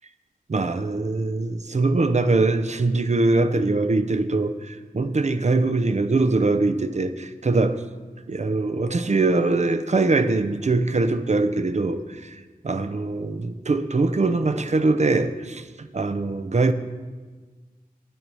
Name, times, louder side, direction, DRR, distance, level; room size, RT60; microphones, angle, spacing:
voice 1, 0.5-7.8 8.3-12.4 12.6-16.7, right 3 dB, 50° right, 11 dB, 0.6 m, -22 dB
9.2 x 5.3 x 6.3 m, 1.4 s
wide cardioid pair, 45°, 15 cm